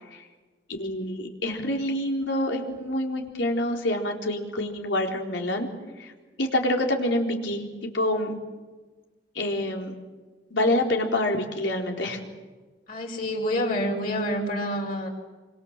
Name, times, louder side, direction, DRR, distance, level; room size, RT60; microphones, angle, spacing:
voice 1, 0.8-5.7 6.0-6.1 6.4-8.3 9.3-9.9 10.5-12.2, left 1 dB, 75° left, 1 dB, 4.2 m, -27 dB
voice 2, 12.9-15.1, equal, 45° left, 0 dB, 5.0 m, -27 dB
26.5 x 26.5 x 7.5 m, 1.3 s
head